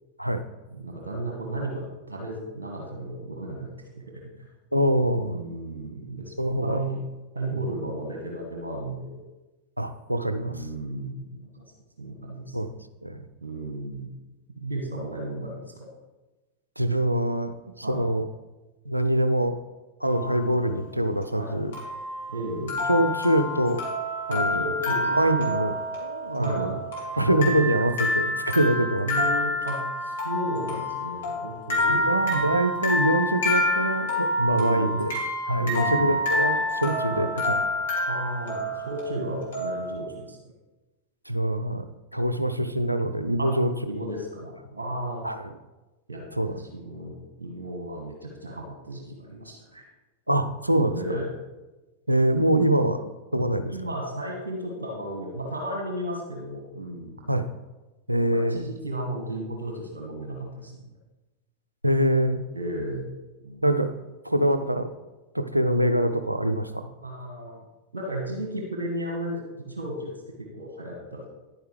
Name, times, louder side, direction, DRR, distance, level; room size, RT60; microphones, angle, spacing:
voice 1, 0.7-3.7 4.0-4.5 5.1-7.0 7.3-9.2 10.4-11.6 12.0-12.5 13.4-14.1 14.6-15.9 17.8-18.1 20.3-20.5 21.3-21.5 22.3-22.8 24.3-25.1 26.4-26.8 29.0-32.1 34.5-35.0 35.6-36.2 37.1-37.4 38.1-40.4 43.4-43.5 43.9-45.2 46.1-49.8 50.9-51.3 53.7-57.2 58.2-60.9 62.5-63.1 63.4-63.7 67.0-67.6 67.9-70.1 70.4-71.3, right 1 dB, 70° right, 1 dB, 1.4 m, -34 dB
voice 2, 4.7-5.4 6.4-6.8 7.5-7.6 9.8-10.7 12.5-12.7 13.0-13.2 16.8-18.3 18.9-19.6 20.0-21.7 22.9-23.8 24.3-24.7 25.1-25.7 26.0-26.8 27.2-29.1 31.9-35.1 35.4-37.6 41.3-41.9 42.1-44.0 45.2-45.4 46.4-46.5 50.3-50.9 52.1-53.0 53.3-54.0 57.3-57.5 58.1-58.7 61.8-62.4 63.6-63.9 64.2-64.9 65.3-66.9, right 1 dB, 90° right, 10 dB, 0.5 m, -24 dB
sound 1, 20.0-20.5 21.7-40.0, left 1 dB, 65° left, 2.6 m, -28 dB
10.5 x 8.9 x 3.3 m, 1.1 s
figure-of-eight pair, 90°, 0 cm